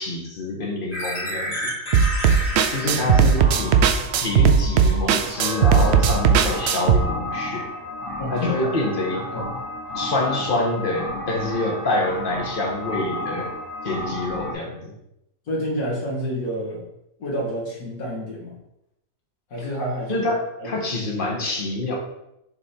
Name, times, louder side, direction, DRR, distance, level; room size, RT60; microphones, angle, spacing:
voice 1, 0.0-1.7 2.7-3.8 4.2-7.7 8.3-9.4 9.9-13.5 13.8-14.9 20.1-21.9, left 2 dB, 35° left, -1 dB, 1.3 m, -26 dB
sound 1, 0.9-14.5, left 1 dB, 55° left, 2.5 m, -32 dB
sound 2, 1.9-7.0, right 7 dB, 75° right, 0.6 m, -17 dB
voice 2, 8.2-8.7 9.3-9.6 15.5-16.9 17.2-18.6 19.5-20.3 20.6-20.7, equal, 70° left, -5 dB, 2.3 m, -28 dB
6.8 x 3.5 x 4.3 m, 0.84 s
omnidirectional pair, 1.6 m